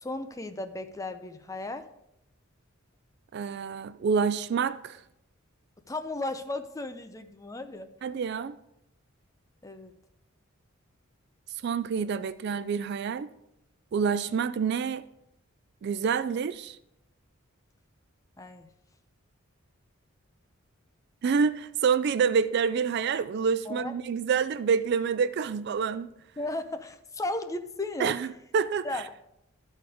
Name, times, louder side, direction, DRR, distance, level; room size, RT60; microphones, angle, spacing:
voice 1, 0.0-1.9 5.9-7.9 9.6-9.9 18.4-18.7 23.7-23.9 26.4-28.2 28.8-29.1, left 2 dB, 15° left, 0.5 m, -35 dB
voice 2, 3.3-5.0 8.0-8.6 11.6-13.3 13.9-15.0 15.8-16.8 21.2-26.1 28.0-28.3 28.5-29.0, right 6 dB, 50° right, 0.3 m, -27 dB
12.5 x 4.3 x 4.9 m
head